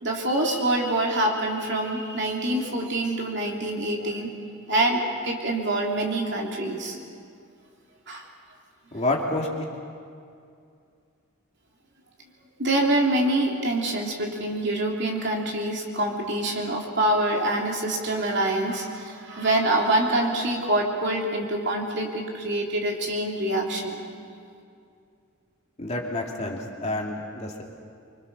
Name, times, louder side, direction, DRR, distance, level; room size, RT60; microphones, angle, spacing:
voice 1, 0.0-4.3 4.7-7.0 8.1-8.3 12.6-24.0, right 1 dB, 50° right, 0 dB, 3.1 m, -25 dB
voice 2, 8.9-9.6 25.8-27.6, left 2 dB, 30° left, -1 dB, 2.7 m, -28 dB
26.0 x 25.0 x 6.8 m, 2.4 s
head